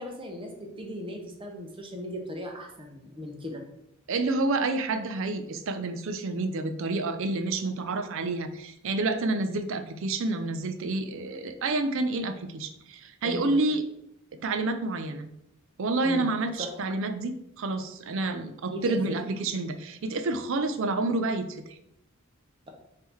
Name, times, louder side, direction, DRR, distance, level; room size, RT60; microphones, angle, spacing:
voice 1, 0.0-3.6 13.2-13.6 16.0-16.3 16.6-16.7 18.7-19.2, equal, 25° right, 1 dB, 0.8 m, -37 dB
voice 2, 4.1-13.8 14.4-15.3 15.8-21.8, right 2 dB, 65° right, 9 dB, 0.5 m, -29 dB
3.7 x 2.8 x 4.5 m, 0.78 s
head